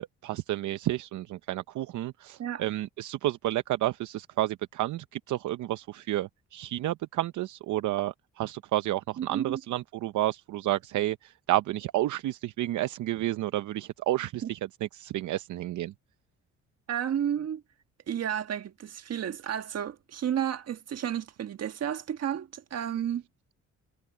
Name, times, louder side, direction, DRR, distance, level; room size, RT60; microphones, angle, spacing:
voice 1, 0.0-14.6 14.9-15.9, right 15 dB, 75° right, 0.7 m, -31 dB
voice 2, 9.2-9.6 14.4-14.5 16.9-17.6 18.1-23.2, right 9 dB, 55° right, 1.5 m, -32 dB
cardioid pair, 90°, 30 cm